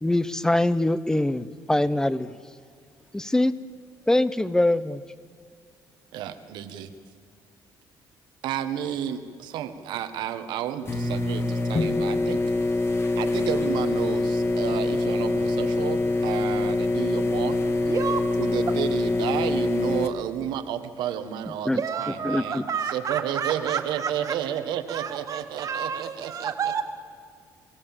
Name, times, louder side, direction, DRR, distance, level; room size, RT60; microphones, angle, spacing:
voice 1, 0.0-2.3 3.1-3.5 4.1-5.0 21.6-21.8 22.2-22.6, left 1 dB, 10° left, 16 dB, 0.7 m, -23 dB
voice 2, 6.1-6.9 8.4-12.4 13.2-17.6 18.4-26.5, right 10 dB, 85° right, 9 dB, 1.4 m, -31 dB
sound 1, 10.8-20.1, left 2 dB, 35° left, 1.8 m, -25 dB
voice 3, 17.8-18.2 21.7-24.4 24.9-26.8, right 7 dB, 50° right, 6 dB, 1.9 m, -30 dB
24.0 x 16.0 x 7.4 m, 2.1 s
cardioid pair, 110°, 8 cm